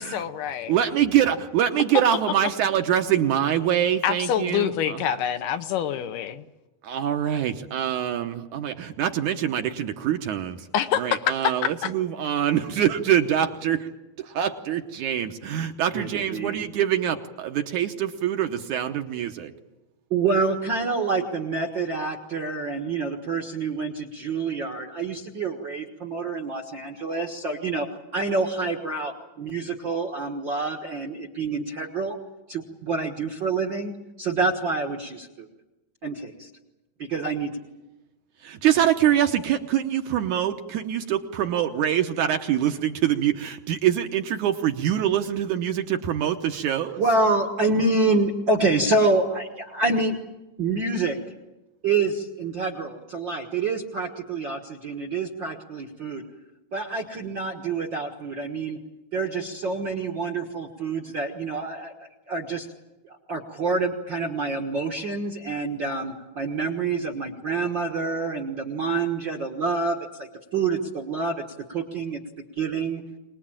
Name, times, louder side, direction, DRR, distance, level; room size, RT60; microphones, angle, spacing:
voice 1, 0.0-0.7 4.0-6.5 10.7-11.9, left 9 dB, 75° left, 9 dB, 2.4 m, -26 dB
voice 2, 0.7-5.0 6.8-10.7 11.0-13.9 14.2-19.5 38.4-47.0, right 10 dB, 70° right, 6 dB, 2.2 m, -24 dB
voice 3, 15.9-16.7 20.1-27.9 28.1-32.2 32.5-35.5 36.0-36.5 37.0-37.5 47.0-50.2 50.6-51.2 51.8-56.2 56.7-58.8 59.1-61.9 62.3-62.7 63.0-71.4 71.7-72.2 72.5-73.0, right 3 dB, 50° right, 2 dB, 1.4 m, -27 dB
24.0 x 20.5 x 8.9 m, 1.0 s
omnidirectional pair, 4.2 m